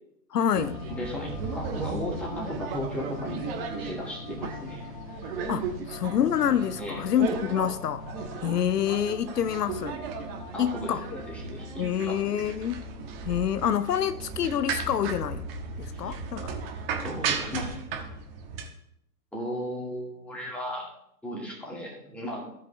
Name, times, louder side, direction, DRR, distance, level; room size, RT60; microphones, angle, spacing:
voice 1, 0.3-0.8 5.5-8.1 8.4-10.0 10.6-11.1 11.8-12.8 13.3-15.5 15.8-16.5, left 9 dB, 75° left, 13 dB, 0.6 m, -27 dB
sound 1, 0.5-14.3, left 6 dB, 25° left, 0.4 m, -45 dB
sound 2, 0.5-18.7, right 5 dB, 35° right, 1.4 m, -36 dB
voice 2, 0.9-4.9 6.8-7.0 10.5-10.9 11.2-12.5 15.9-16.2 17.0-17.8 19.3-20.9 21.2-22.5, equal, 5° left, -3 dB, 2.3 m, -36 dB
15.5 x 5.5 x 3.4 m, 0.76 s
figure-of-eight pair, 120°, 49 cm